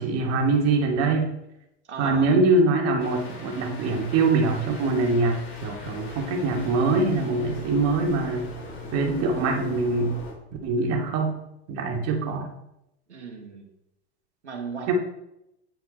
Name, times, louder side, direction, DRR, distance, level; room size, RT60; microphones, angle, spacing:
voice 1, 0.0-1.3 2.0-8.5 8.9-10.1 10.6-11.4 11.7-12.5 14.9-15.0, right 3 dB, 50° right, 2 dB, 2.7 m, -23 dB
voice 2, 1.8-2.3 13.1-13.7 14.4-14.9, right 5 dB, 85° right, 1 dB, 1.8 m, -36 dB
sound 1, 3.0-10.3, left 3 dB, 40° left, 4.7 m, -40 dB
9.9 x 9.2 x 4.4 m, 0.84 s
hypercardioid pair, 80°, 34 cm